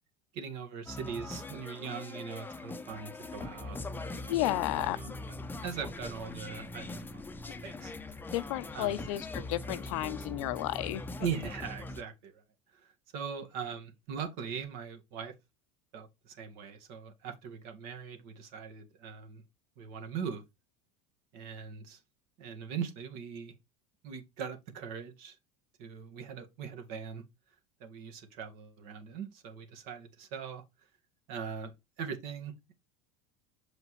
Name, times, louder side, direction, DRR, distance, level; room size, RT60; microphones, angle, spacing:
voice 1, 0.3-4.4 4.8-7.2 7.6-7.9 8.7-9.0 11.2-12.4 12.7-15.3 15.9-19.4 19.8-20.4 21.3-22.0 22.4-23.5 24.0-25.4 25.8-27.2 27.8-30.6 31.3-32.7, right 7 dB, 65° right, 1.8 m, -41 dB
sound 1, 0.9-12.0, left 2 dB, 10° left, 0.7 m, -41 dB
voice 2, 4.3-5.0 8.3-11.0, left 16 dB, 75° left, 0.6 m, -32 dB
6.5 x 5.1 x 3.2 m
supercardioid pair, 105°, 17 cm